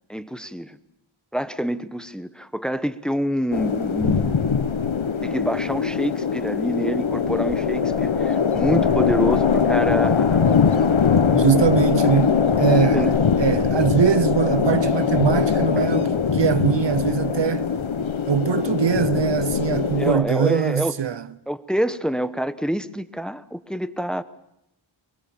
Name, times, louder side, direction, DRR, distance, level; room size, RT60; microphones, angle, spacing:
voice 1, 0.1-0.8 1.3-4.6 5.2-10.5 12.9-13.1 19.9-21.0 21.5-24.2, equal, ahead, 1.0 m, -27 dB
sound 1, 3.5-20.1, left 6 dB, 70° left, 1.2 m, -21 dB
voice 2, 11.3-17.7 18.3-21.3, right 7 dB, 60° right, 0.7 m, -22 dB
23.0 x 22.0 x 7.1 m
wide cardioid pair, 45°, 49 cm